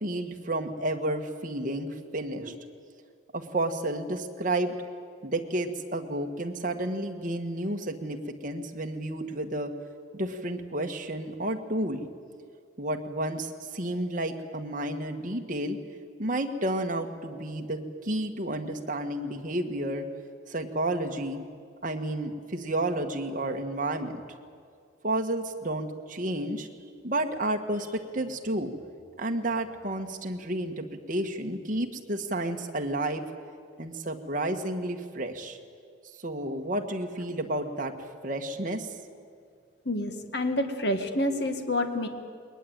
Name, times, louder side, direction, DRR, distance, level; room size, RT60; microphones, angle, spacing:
voice 1, 0.0-2.6 3.3-4.7 5.2-8.2 8.4-9.7 10.1-12.0 12.8-15.8 16.2-20.1 20.5-21.4 21.8-24.2 25.0-26.7 27.0-28.7 29.2-33.2 33.8-35.6 36.2-37.9 38.2-38.9, right 1 dB, 40° right, 4 dB, 1.7 m, -31 dB
voice 2, 39.9-42.1, left 1 dB, 55° left, 6 dB, 1.9 m, -28 dB
21.0 x 20.0 x 9.0 m, 2.2 s
head